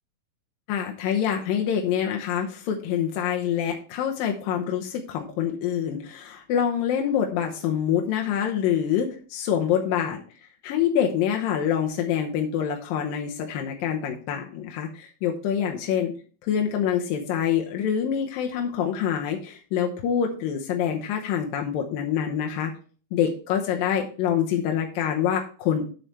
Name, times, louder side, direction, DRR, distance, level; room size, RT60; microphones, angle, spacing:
voice 1, 0.7-16.1 16.4-22.7 23.1-25.9, left 9 dB, 75° left, 1 dB, 2.5 m, -26 dB
9.3 x 7.7 x 3.2 m, 0.40 s
omnidirectional pair, 4.4 m